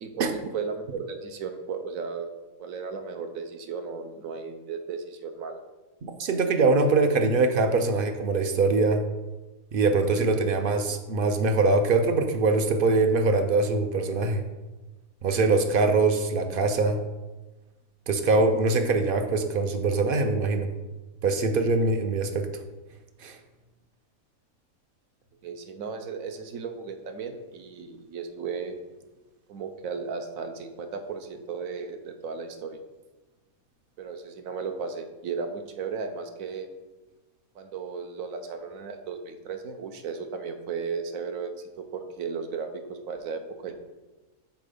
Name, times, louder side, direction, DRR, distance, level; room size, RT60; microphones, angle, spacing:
voice 1, 0.0-2.3 2.6-5.6 25.4-28.8 29.5-32.8 34.0-36.7 37.5-43.8, right 5 dB, 75° right, 7 dB, 1.1 m, -35 dB
voice 2, 6.0-9.0 9.7-14.4 15.2-17.0 18.1-20.7 21.2-22.5 23.2-23.4, right 3 dB, 60° right, 6 dB, 0.6 m, -23 dB
5.9 x 4.4 x 5.0 m, 1.1 s
omnidirectional pair, 1.5 m